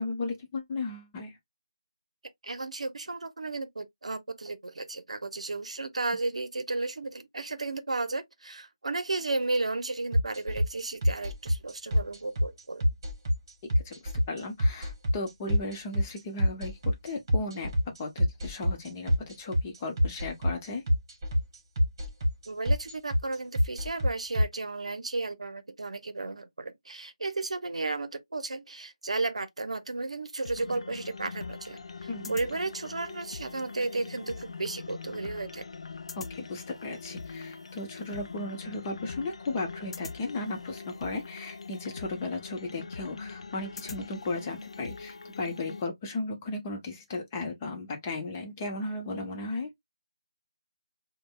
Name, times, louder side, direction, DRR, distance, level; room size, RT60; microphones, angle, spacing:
voice 1, 0.0-1.4 13.8-16.8 17.0-17.7 18.0-20.8 32.1-32.4 36.1-49.7, left 2 dB, 25° left, 0.9 m, -35 dB
voice 2, 2.4-12.9 22.5-31.8 32.3-35.7, right 3 dB, 75° right, 0.7 m, -33 dB
sound 1, 10.1-24.4, equal, 40° right, 1.3 m, -26 dB
sound 2, 30.4-45.8, left 4 dB, 60° left, 0.4 m, -42 dB
5.1 x 2.2 x 2.2 m
figure-of-eight pair, 160°, 3 cm